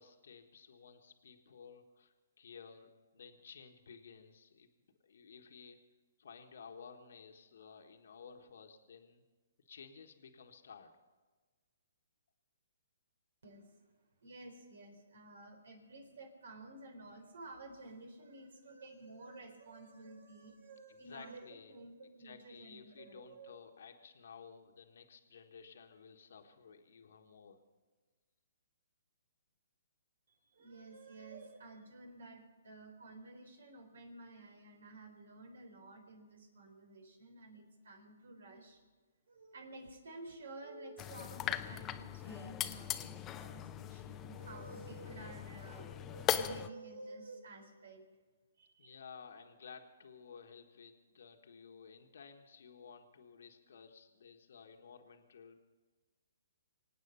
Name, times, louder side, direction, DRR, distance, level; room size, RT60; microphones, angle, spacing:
voice 1, 0.0-4.7 5.0-5.8 6.2-9.2 9.6-10.9 20.9-21.8 22.2-27.6 48.8-55.6, left 6 dB, 70° left, 4 dB, 1.4 m, -55 dB
voice 2, 13.4-13.8 14.2-23.6 30.3-38.8 39.3-48.1 48.6-48.9, right 2 dB, 75° right, 6 dB, 3.9 m, -52 dB
sound 1, 41.0-46.7, left 10 dB, 20° left, 0.7 m, -39 dB
24.5 x 9.1 x 5.6 m, 1.3 s
hypercardioid pair, 140°, 0 cm